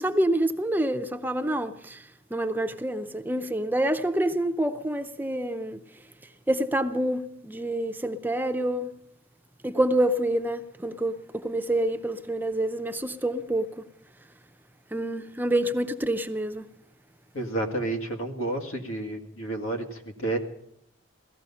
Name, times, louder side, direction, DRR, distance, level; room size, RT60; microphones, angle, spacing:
voice 1, 0.0-2.0 2.3-5.8 6.5-8.9 9.6-13.7 14.9-16.7, right 1 dB, 10° right, 0.5 m, -27 dB
voice 2, 17.3-20.4, right 2 dB, 90° left, 2.0 m, -30 dB
17.5 x 14.0 x 5.6 m
head